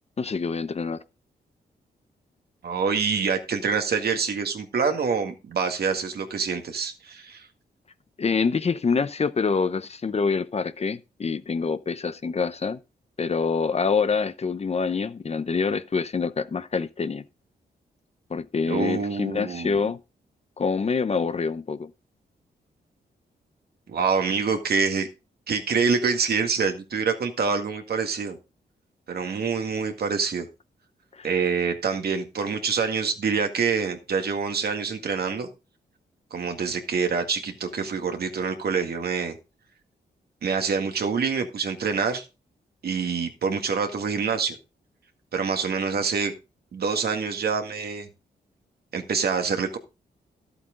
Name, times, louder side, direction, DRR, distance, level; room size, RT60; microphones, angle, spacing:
voice 1, 0.2-1.0 8.2-12.8 13.2-17.2 18.3-20.0 20.6-21.9 31.1-31.3, left 5 dB, 40° left, 0.8 m, -26 dB
voice 2, 2.6-7.5 18.7-19.8 23.9-25.1 25.5-28.4 29.1-30.5 31.2-35.5 36.3-39.4 40.4-42.2 42.8-44.6 45.3-46.3 46.7-48.1 48.9-49.8, right 5 dB, 65° right, 1.9 m, -26 dB
12.0 x 8.0 x 3.8 m
cardioid pair, 75°, 17 cm